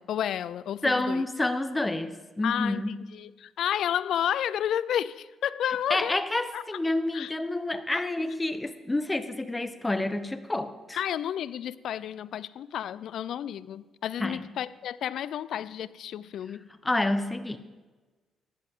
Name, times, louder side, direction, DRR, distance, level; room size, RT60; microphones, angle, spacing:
voice 1, 0.0-1.2 2.4-2.8 3.1-6.2 6.5-6.6 7.1-7.3 8.0-8.1 11.0-16.7, left 10 dB, 70° left, 18 dB, 0.4 m, -31 dB
voice 2, 0.8-2.9 5.9-11.0 14.2-14.4 16.8-17.6, left 2 dB, 15° left, 11 dB, 0.9 m, -28 dB
15.0 x 11.0 x 3.7 m, 1.2 s
cardioid pair, 90°, 0 cm